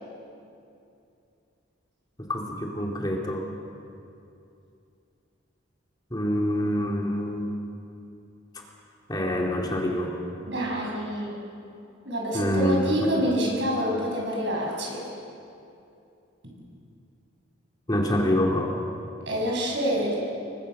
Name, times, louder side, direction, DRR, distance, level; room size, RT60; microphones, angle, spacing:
voice 1, 2.2-3.5 6.1-7.5 9.1-10.2 12.3-12.8 13.1-13.2 17.9-18.7, left 1 dB, 20° left, 0 dB, 2.4 m, -26 dB
voice 2, 10.5-11.4 12.0-15.1 19.3-20.1, equal, 60° right, -2 dB, 7.2 m, -27 dB
28.5 x 22.5 x 6.6 m, 2.6 s
head